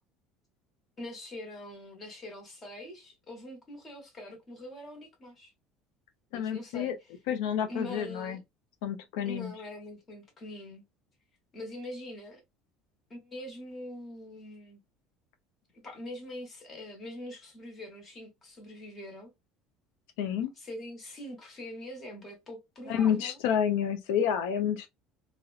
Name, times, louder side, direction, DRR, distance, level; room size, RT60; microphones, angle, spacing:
voice 1, 1.0-5.5 6.3-7.1 7.7-8.4 9.2-10.8 11.5-12.4 13.1-14.8 15.8-19.3 20.5-23.4, left 1 dB, 20° left, 0.9 m, -43 dB
voice 2, 6.3-7.0 7.3-8.4 8.8-9.5 20.2-20.5 22.9-24.9, left 8 dB, 90° left, 0.4 m, -29 dB
2.6 x 2.0 x 2.4 m
cardioid pair, 175°, 0 cm